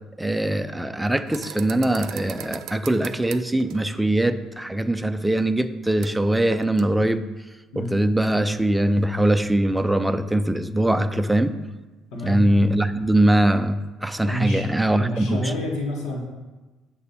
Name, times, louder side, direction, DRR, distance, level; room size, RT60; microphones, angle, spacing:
voice 1, 0.2-7.2 7.8-11.5 12.2-15.5, right 1 dB, 5° right, 10 dB, 0.4 m, -22 dB
sound 1, 1.3-4.0 6.0-6.2 6.5-6.9, right 11 dB, 70° right, 0.4 m, -39 dB
voice 2, 12.1-12.5 14.3-14.7 15.0-16.2, equal, 80° left, 1 dB, 1.6 m, -28 dB
8.4 x 6.1 x 4.1 m, 1.2 s
cardioid pair, 120°, 0 cm